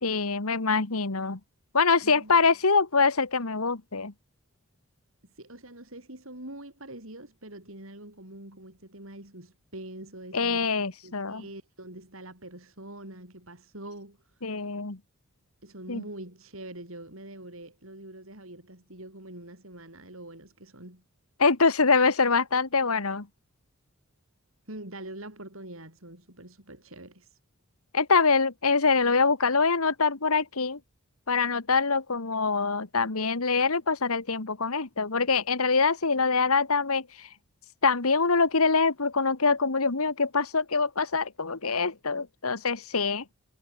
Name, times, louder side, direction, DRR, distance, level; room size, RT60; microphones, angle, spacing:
voice 1, 0.0-1.4 1.7-4.1 10.3-11.4 14.4-15.0 15.9-16.0 21.4-23.3 27.9-30.8 31.3-37.3 37.8-43.2, left 4 dB, 80° left, 1.7 m, -24 dB
voice 2, 2.0-2.5 5.4-14.2 15.6-21.0 24.7-27.3, right 1 dB, 65° right, 7.9 m, -44 dB
head